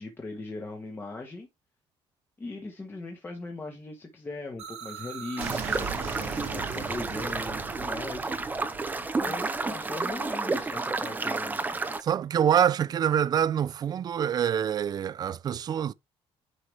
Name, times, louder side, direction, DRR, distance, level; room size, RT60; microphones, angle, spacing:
voice 1, 0.0-1.5 2.4-8.3 8.9-11.6, left 3 dB, 20° left, 1.4 m, -39 dB
sound 1, 4.6-10.3, right 7 dB, 90° right, 2.3 m, -39 dB
sound 2, 5.4-12.0, right 3 dB, 15° right, 0.8 m, -31 dB
voice 2, 12.0-15.9, right 9 dB, 35° right, 0.4 m, -25 dB
9.8 x 4.8 x 3.4 m
cardioid pair, 150°, 11 cm